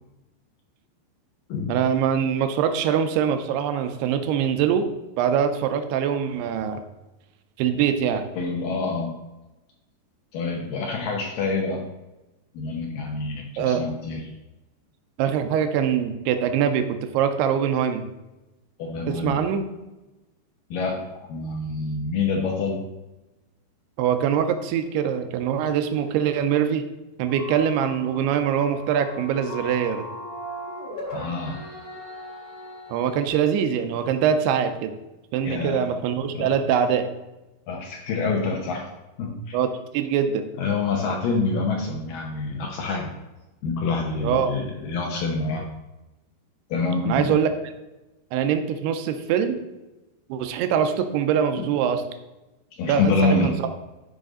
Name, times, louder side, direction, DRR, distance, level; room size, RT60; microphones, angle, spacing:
voice 1, 1.7-4.9 5.2-6.9 7.6-8.2 13.6-13.8 15.2-18.0 19.1-19.6 24.0-26.8 27.2-30.1 32.9-34.9 35.3-37.1 39.5-40.5 44.2-44.5 47.0-47.5 48.3-49.6 50.3-52.0 52.9-53.7, right 8 dB, 85° right, 8 dB, 2.7 m, -23 dB
voice 2, 8.4-9.2 10.3-11.9 12.5-14.2 18.8-19.5 20.7-22.9 31.1-31.6 35.4-35.9 36.3-36.6 37.7-38.9 39.2-39.6 40.6-43.1 43.6-45.7 46.7-47.4 51.6-51.7 52.7-53.6, left 3 dB, 75° left, 1 dB, 2.2 m, -26 dB
sound 1, 27.3-33.3, equal, 45° left, 1.2 m, -38 dB
12.5 x 5.1 x 3.8 m, 1.0 s
omnidirectional pair, 4.8 m